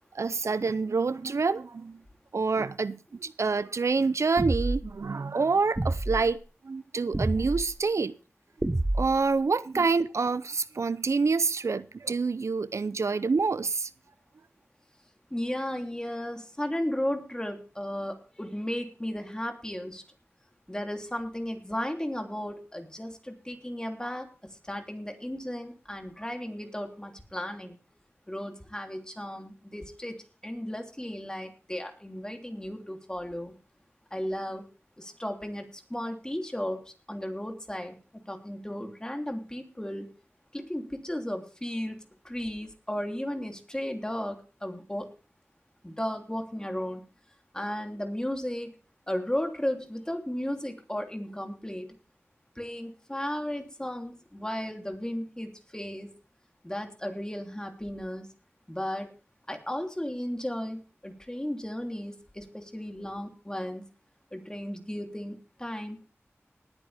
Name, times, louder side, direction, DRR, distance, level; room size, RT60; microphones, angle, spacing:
voice 1, 0.1-2.0 2.3-8.2 8.9-13.9, right 4 dB, 85° right, 0.5 m, -27 dB
sound 1, 4.4-5.0 5.8-6.2 7.1-7.6 8.6-9.3, right 1 dB, 30° right, 1.0 m, -28 dB
voice 2, 15.3-20.0 20.7-24.3 24.7-27.8 28.3-30.2 30.4-33.5 34.1-34.6 35.0-36.8 37.1-40.1 40.5-42.0 42.2-45.1 45.8-47.0 47.5-48.7 49.1-51.9 52.6-56.1 56.6-58.3 58.7-59.1 59.5-63.8 64.3-66.0, left 1 dB, 15° left, 3.0 m, -35 dB
19.5 x 9.1 x 3.4 m
wide cardioid pair, 55°, 5 cm